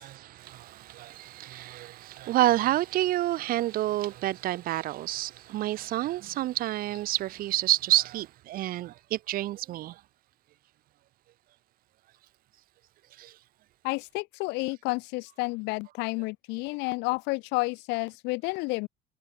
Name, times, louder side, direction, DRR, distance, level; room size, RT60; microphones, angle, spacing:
voice 1, 0.0-9.9, right 15 dB, 55° right, 0.5 m, -29 dB
voice 2, 13.8-18.9, left 26 dB, 90° left, 0.8 m, -30 dB
cardioid pair, 115°, 17 cm